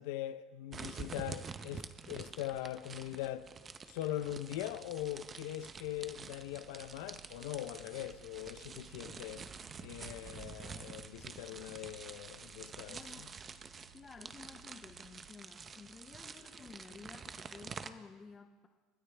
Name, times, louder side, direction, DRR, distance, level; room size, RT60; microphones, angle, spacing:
voice 1, 0.0-3.5 3.9-9.5 9.8-13.3, left 13 dB, 80° left, 0.6 m, -41 dB
sound 1, 0.7-17.9, right 5 dB, 20° right, 0.6 m, -48 dB
sound 2, 5.1-12.1, right 6 dB, 60° right, 3.9 m, -63 dB
sound 3, 5.8-15.3, right 9 dB, 80° right, 1.0 m, -63 dB
voice 2, 12.9-13.3 13.9-18.7, left 5 dB, 15° left, 0.6 m, -53 dB
30.0 x 13.5 x 3.4 m
cardioid pair, 170°, 0 cm